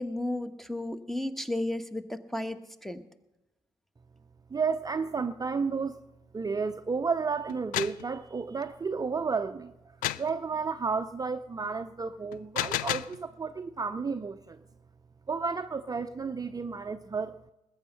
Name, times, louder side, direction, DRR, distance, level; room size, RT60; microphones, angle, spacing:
voice 1, 0.0-3.0, left 1 dB, ahead, 11 dB, 1.2 m, -33 dB
voice 2, 4.5-6.0 6.3-9.7 10.2-14.6 15.3-17.3, right 5 dB, 25° right, 10 dB, 0.6 m, -32 dB
sound 1, 7.5-8.0 10.0-10.3 12.3-13.2, left 15 dB, 65° left, 0.4 m, -31 dB
20.5 x 7.9 x 5.6 m, 0.95 s
hypercardioid pair, 40°, 15 cm